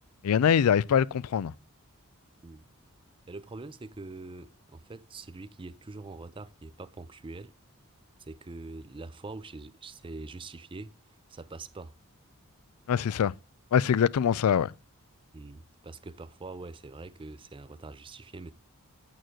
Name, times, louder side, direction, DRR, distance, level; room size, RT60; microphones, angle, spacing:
voice 1, 0.2-1.5 12.9-13.3 13.7-14.7, left 8 dB, 85° left, 0.4 m, -23 dB
voice 2, 3.3-7.5 8.2-10.9 11.3-11.9 15.3-18.5, right 3 dB, 25° right, 0.5 m, -44 dB
8.9 x 6.3 x 4.5 m
head